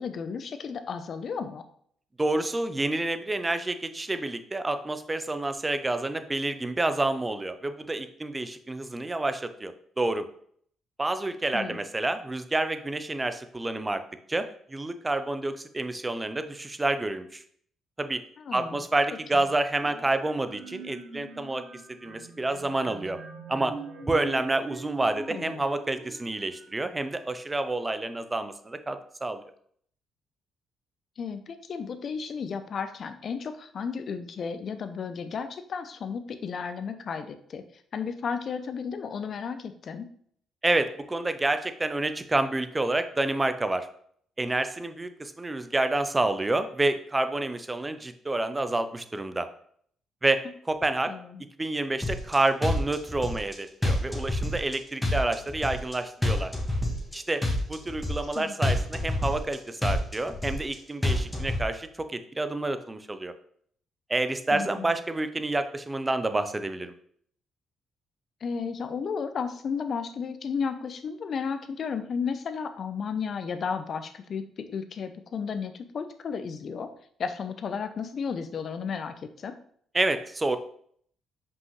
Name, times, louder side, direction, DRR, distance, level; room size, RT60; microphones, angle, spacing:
voice 1, 0.0-1.6 11.5-11.8 18.4-18.8 19.3-19.5 25.3-25.6 31.2-37.6 37.9-40.1 51.1-51.4 58.3-58.5 64.5-64.9 68.4-76.9 77.2-79.6, left 6 dB, 55° left, 9 dB, 0.6 m, -33 dB
voice 2, 2.2-10.3 11.0-14.0 14.3-17.4 18.0-18.2 18.5-21.6 22.0-23.2 23.5-23.8 24.0-29.4 40.6-43.9 44.4-49.5 50.2-50.4 50.7-51.1 51.6-56.5 57.1-63.3 64.1-66.9 79.9-80.6, right 2 dB, 20° right, 10 dB, 0.6 m, -28 dB
sound 1, 19.8-27.5, right 4 dB, 60° right, 1.4 m, -44 dB
sound 2, 52.0-52.3 52.6-53.5 53.8-54.7 55.0-55.9 56.2-57.1 57.4-58.3 58.6-59.5 59.8-60.7 61.0-61.6, left 1 dB, 10° left, 1.7 m, -27 dB
5.5 x 5.4 x 3.2 m, 0.62 s
cardioid pair, 90°, 0 cm